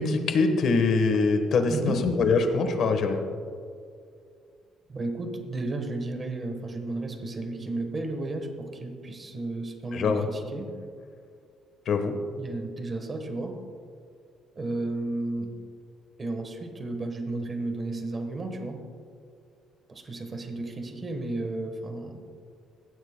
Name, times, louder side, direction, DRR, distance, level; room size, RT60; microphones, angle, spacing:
voice 1, 0.0-3.2 9.9-10.3 11.9-12.2, left 4 dB, 50° left, 7 dB, 1.1 m, -23 dB
voice 2, 1.7-2.0 4.9-10.7 12.4-13.6 14.6-15.5 16.2-18.8 19.9-22.2, right 2 dB, 25° right, 6 dB, 1.2 m, -33 dB
18.5 x 15.0 x 2.2 m, 2.3 s
cardioid pair, 175°, 0 cm